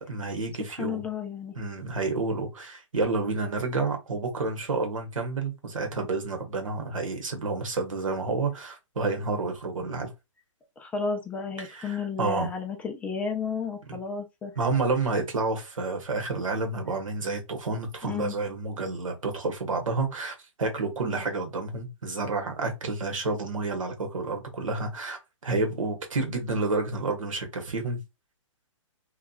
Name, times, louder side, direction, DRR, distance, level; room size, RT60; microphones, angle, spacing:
voice 1, 0.1-1.0 1.6-10.1 11.6-12.5 13.9-14.0 14.6-28.0, right 3 dB, 80° right, 1.1 m, -30 dB
voice 2, 0.8-1.6 10.8-14.5 18.0-18.3, left 5 dB, 10° left, 0.5 m, -32 dB
2.7 x 2.4 x 2.2 m
hypercardioid pair, 130°, 17 cm